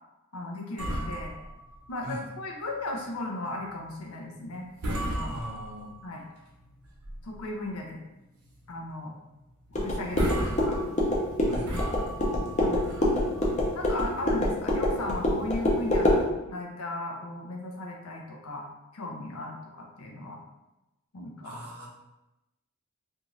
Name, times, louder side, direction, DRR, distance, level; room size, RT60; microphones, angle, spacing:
voice 1, 0.3-1.3 1.9-4.7 5.0-5.3 6.0-6.3 7.2-8.0 8.7-9.1 9.8-10.8 12.6-12.9 13.7-18.7 18.9-20.4 21.1-21.5, left 2 dB, 80° left, 0 dB, 0.6 m, -36 dB
sound 1, 0.8-2.6 2.9-3.1 3.6-3.8 4.3-4.5 4.8-6.1 6.6-7.5 7.9-8.0 8.4-8.6 8.9-9.0 9.7-9.8 10.0-13.7, right 1 dB, 80° right, 0.8 m, -35 dB
voice 2, 5.3-5.9 11.4-11.7 21.4-21.9, equal, 45° right, -4 dB, 0.7 m, -39 dB
sound 2, 9.7-16.2, left 1 dB, 30° left, 0.5 m, -26 dB
2.7 x 2.4 x 3.0 m, 0.97 s
head